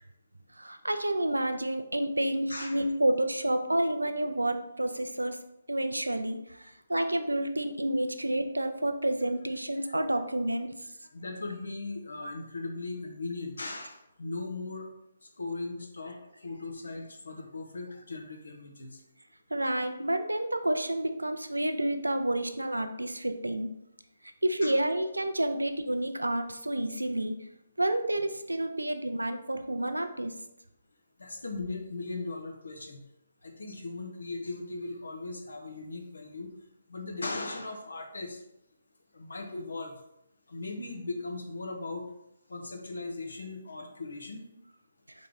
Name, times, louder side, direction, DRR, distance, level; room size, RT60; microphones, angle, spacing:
voice 1, 0.6-5.4 5.7-6.6 6.9-10.7 19.5-23.7 24.4-27.3 27.8-30.4, right 1 dB, 90° right, 7 dB, 0.4 m, -29 dB
voice 2, 2.5-2.8 9.7-10.0 11.1-14.9 15.2-19.0 24.6-24.8 31.2-33.0 33.4-36.5 36.9-38.4 39.1-40.0 40.5-42.1 42.5-44.5, left 3 dB, 75° left, 3 dB, 0.9 m, -38 dB
3.9 x 3.2 x 3.6 m, 0.83 s
figure-of-eight pair, 145°, 0 cm